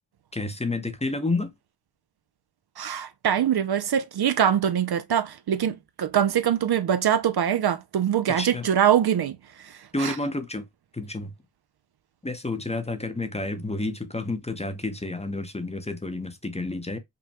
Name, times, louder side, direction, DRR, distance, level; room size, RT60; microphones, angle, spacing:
voice 1, 0.3-1.5 8.3-8.7 9.9-10.6 10.9-11.3 12.2-17.0, left 2 dB, 15° left, 0.7 m, -30 dB
voice 2, 2.8-10.2, right 9 dB, 60° right, 0.5 m, -23 dB
5.3 x 2.2 x 2.8 m
wide cardioid pair, 75°, 45 cm